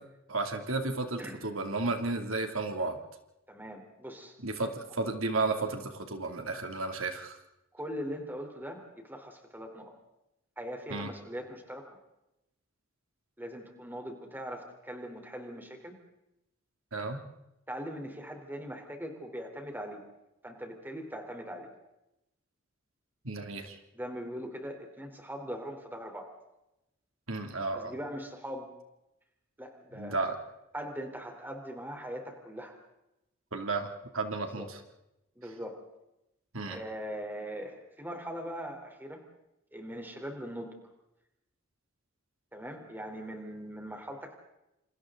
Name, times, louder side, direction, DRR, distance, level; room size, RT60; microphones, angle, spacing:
voice 1, 0.3-3.0 4.4-7.4 10.9-11.1 16.9-17.2 23.2-23.8 27.3-27.9 30.0-30.4 33.5-34.8 36.5-36.8, right 3 dB, 75° right, 5 dB, 2.7 m, -33 dB
voice 2, 3.5-4.3 7.7-10.0 10.6-11.9 13.4-15.9 17.7-20.0 20.4-21.7 23.9-26.3 27.7-28.7 29.6-30.4 30.7-32.7 34.4-34.7 35.4-35.8 36.7-39.2 39.7-40.7 42.5-44.3, equal, 10° right, 3 dB, 3.6 m, -41 dB
28.5 x 28.5 x 3.9 m, 0.90 s
head